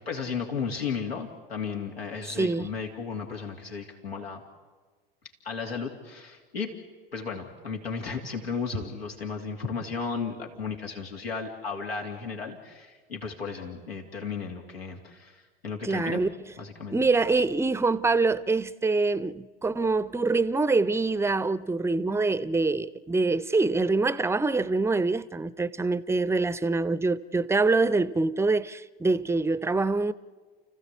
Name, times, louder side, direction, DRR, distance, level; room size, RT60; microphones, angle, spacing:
voice 1, 0.0-4.4 5.4-6.7 7.1-16.2 16.6-17.0, left 5 dB, 85° left, 2.7 m, -34 dB
voice 2, 2.4-2.7 15.8-16.3 16.9-30.1, right 3 dB, 10° right, 0.7 m, -25 dB
30.0 x 15.5 x 8.2 m
figure-of-eight pair, 80°, 30 cm